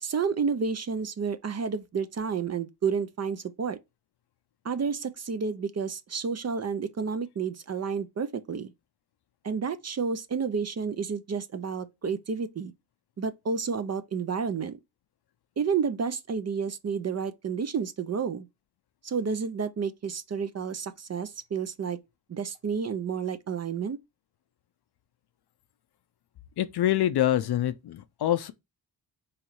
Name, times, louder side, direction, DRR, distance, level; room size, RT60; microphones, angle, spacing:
voice 1, 0.0-3.8 4.6-8.7 9.4-12.7 13.2-14.8 15.6-18.5 19.0-22.0 22.3-24.0, right 6 dB, 35° right, 0.5 m, -30 dB
voice 2, 26.6-28.5, left 12 dB, 60° left, 0.5 m, -25 dB
3.7 x 3.1 x 3.0 m
cardioid pair, 70°, 45 cm